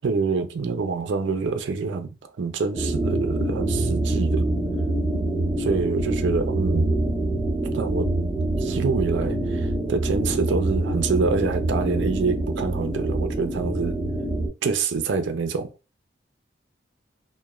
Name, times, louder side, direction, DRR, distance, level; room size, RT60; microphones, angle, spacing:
voice 1, 0.0-4.4 5.6-6.9 7.7-8.1 8.6-14.0 14.6-15.7, right 4 dB, 70° right, 0.4 m, -26 dB
sound 1, 2.7-14.5, right 2 dB, 5° left, 1.2 m, -25 dB
3.0 x 2.1 x 2.3 m
head